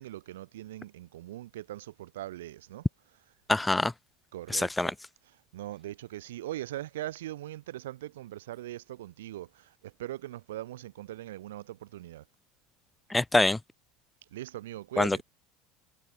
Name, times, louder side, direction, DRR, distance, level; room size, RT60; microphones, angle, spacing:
voice 1, 0.0-2.9 4.3-4.9 5.5-12.2 14.3-15.2, right 14 dB, 75° right, 1.3 m, -40 dB
voice 2, 3.5-3.9 4.5-4.9 13.1-13.6 15.0-15.2, left 2 dB, 10° left, 0.5 m, -25 dB
hypercardioid pair, 75°, 0 cm